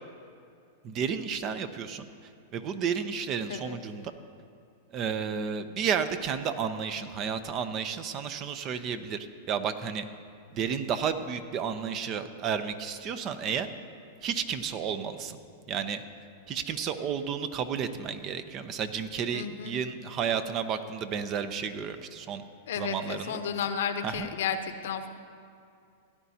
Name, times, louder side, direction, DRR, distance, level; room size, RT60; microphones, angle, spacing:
voice 1, 0.8-2.1 2.5-4.1 4.9-10.0 10.5-13.7 14.2-15.4 15.7-16.0 16.5-22.4 22.7-23.4 24.0-24.3, right 7 dB, 35° right, 10 dB, 0.7 m, -32 dB
voice 2, 19.3-19.7 22.7-25.1, left 7 dB, 75° left, 8 dB, 0.9 m, -32 dB
17.0 x 10.5 x 2.8 m, 2.5 s
hypercardioid pair, 125°, 0 cm